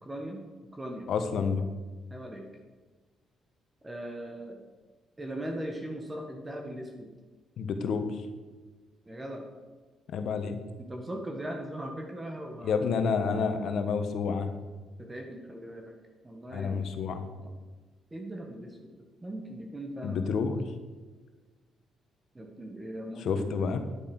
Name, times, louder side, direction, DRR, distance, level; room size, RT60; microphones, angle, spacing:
voice 1, 0.0-0.4 0.7-1.1 2.1-2.5 3.8-4.6 5.2-7.1 9.0-9.4 10.8-13.0 15.0-15.9 16.2-16.8 17.4-17.5 18.1-20.4 22.3-23.6, right 1 dB, 20° right, 2 dB, 1.6 m, -39 dB
voice 2, 1.1-1.6 7.6-8.2 10.1-10.6 12.6-14.5 16.5-17.2 20.0-20.6 23.2-23.8, left 5 dB, 70° left, 8 dB, 1.3 m, -29 dB
10.0 x 8.5 x 6.1 m, 1.3 s
cardioid pair, 90°, 0 cm